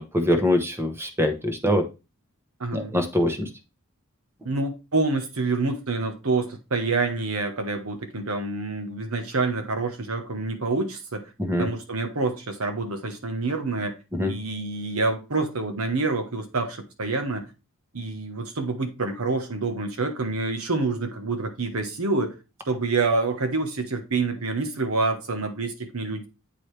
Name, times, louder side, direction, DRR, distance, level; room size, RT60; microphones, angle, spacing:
voice 1, 0.0-1.9 2.7-3.5 11.4-11.7 14.1-14.3, left 1 dB, 10° right, 1.0 m, -23 dB
voice 2, 2.6-2.9 4.4-11.3 11.6-13.9 14.2-17.5 17.9-22.3 22.7-26.3, right 3 dB, 80° right, 1.3 m, -27 dB
8.1 x 4.7 x 3.3 m
head